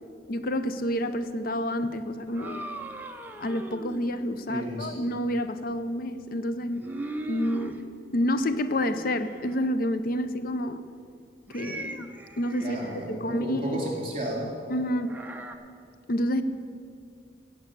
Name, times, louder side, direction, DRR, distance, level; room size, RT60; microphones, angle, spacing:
voice 1, 0.3-2.7 3.4-6.8 7.3-7.8 8.1-10.8 11.5-12.8 13.1-13.8 14.7-15.2 16.1-16.4, equal, 55° left, 11 dB, 0.5 m, -29 dB
sound 1, 2.3-4.2 6.6-7.8 8.6-9.6 11.5-13.1 15.1-15.6, right 2 dB, 10° right, 0.7 m, -39 dB
voice 2, 4.5-4.9 12.6-14.5, right 1 dB, 35° right, -1 dB, 3.2 m, -32 dB
16.0 x 5.5 x 8.4 m, 2.3 s
head